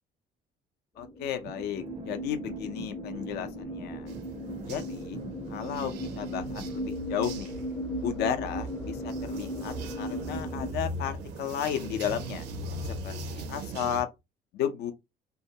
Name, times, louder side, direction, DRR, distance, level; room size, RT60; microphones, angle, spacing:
voice 1, 1.0-4.1 4.6-5.2 5.5-7.6 8.0-12.5 13.0-14.1 14.5-14.9, left 9 dB, 75° left, 0.6 m, -34 dB
sound 1, 1.0-10.7, equal, 15° left, 0.6 m, -37 dB
sound 2, 1.4-6.8, right 5 dB, 35° right, 0.4 m, -43 dB
sound 3, 4.1-14.0, right 2 dB, 85° right, 0.6 m, -40 dB
2.7 x 2.2 x 2.7 m
cardioid pair, 110°, 17 cm